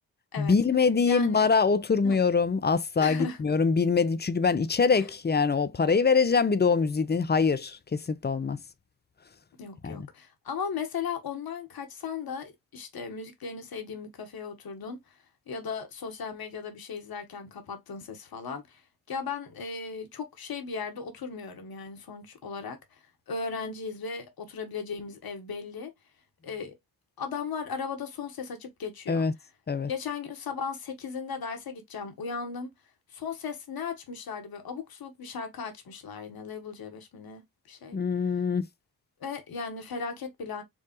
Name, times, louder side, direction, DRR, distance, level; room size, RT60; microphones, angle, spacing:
voice 1, 0.4-8.6 9.8-10.1 29.1-29.3 29.7-29.9 37.9-38.6, left 5 dB, 25° left, 0.6 m, -24 dB
voice 2, 1.1-1.5 2.0-2.2 3.0-3.4 5.0-5.1 9.6-15.0 15.5-18.8 19.1-25.9 26.4-26.8 27.2-29.3 29.9-32.7 33.1-37.4 37.7-38.0 39.2-40.6, left 5 dB, 55° left, 1.3 m, -37 dB
4.7 x 2.3 x 3.0 m
hypercardioid pair, 40°, 43 cm